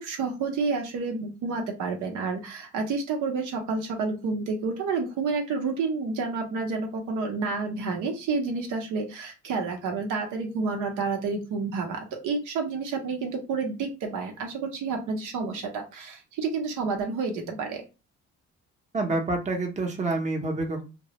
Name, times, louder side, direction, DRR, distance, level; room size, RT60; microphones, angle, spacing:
voice 1, 0.0-17.8, right 4 dB, 80° right, 2 dB, 0.7 m, -29 dB
voice 2, 18.9-20.8, right 2 dB, 25° right, 2 dB, 0.7 m, -27 dB
2.2 x 2.0 x 2.8 m, 0.29 s
cardioid pair, 90°, 30 cm